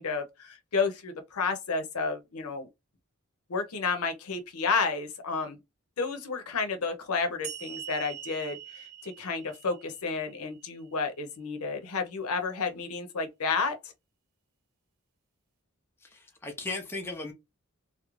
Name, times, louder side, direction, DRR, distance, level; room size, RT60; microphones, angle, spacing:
voice 1, 0.0-2.7 3.5-5.6 6.0-13.8, left 4 dB, 80° left, 0.6 m, -31 dB
sound 1, 7.4-10.8, right 10 dB, 85° right, 0.6 m, -43 dB
voice 2, 16.0-17.3, left 2 dB, 10° left, 0.4 m, -37 dB
2.4 x 2.0 x 3.0 m
head